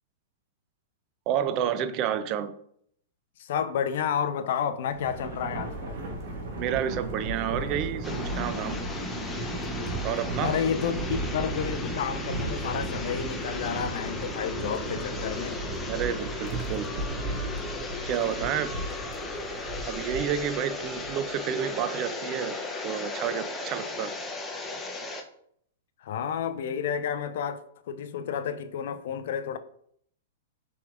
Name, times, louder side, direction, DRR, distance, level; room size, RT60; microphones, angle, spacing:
voice 1, 1.3-2.5 6.6-8.8 10.0-10.6 15.9-16.9 18.0-18.8 19.9-24.1, right 9 dB, 40° right, 0.4 m, -30 dB
voice 2, 3.4-6.0 10.4-15.6 26.0-29.6, left 8 dB, 60° left, 0.4 m, -31 dB
Thunder, 4.8-21.5, right 3 dB, 60° right, 1.0 m, -36 dB
sound 1, 5.7-20.5, right 1 dB, 15° right, 1.4 m, -51 dB
sound 2, 8.0-25.2, left 3 dB, 15° left, 0.7 m, -36 dB
5.7 x 3.5 x 2.4 m
figure-of-eight pair, 105°, 0 cm